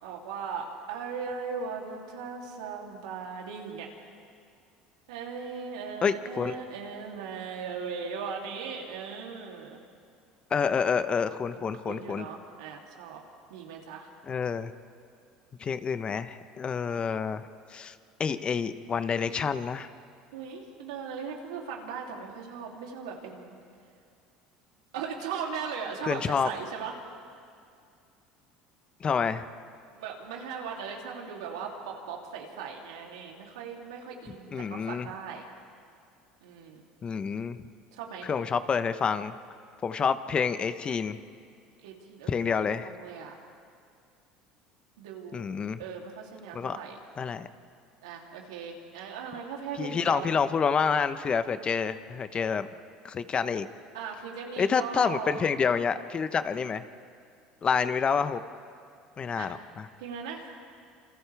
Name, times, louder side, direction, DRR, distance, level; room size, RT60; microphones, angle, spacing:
voice 1, 0.0-3.9 5.1-9.8 11.5-13.2 13.5-14.1 20.3-23.6 24.9-26.9 29.9-35.4 36.4-36.8 37.9-38.3 41.8-43.3 45.0-45.5 45.8-47.0 48.0-50.3 53.9-55.4 59.4-59.5 60.0-60.6, right 6 dB, 85° right, -1 dB, 3.2 m, -38 dB
voice 2, 6.0-6.5 10.5-12.3 14.3-14.7 15.6-17.4 17.7-17.9 18.2-19.9 26.0-26.5 29.0-29.4 34.5-35.1 37.0-37.6 38.2-39.3 39.8-41.2 42.3-42.9 45.3-45.8 46.5-46.8 47.2-47.5 49.8-52.7 53.0-53.7 54.6-56.8 57.6-58.4 59.2-59.9, left 6 dB, 35° left, 11 dB, 1.1 m, -28 dB
28.0 x 27.0 x 3.5 m, 2.4 s
hypercardioid pair, 80°, 3 cm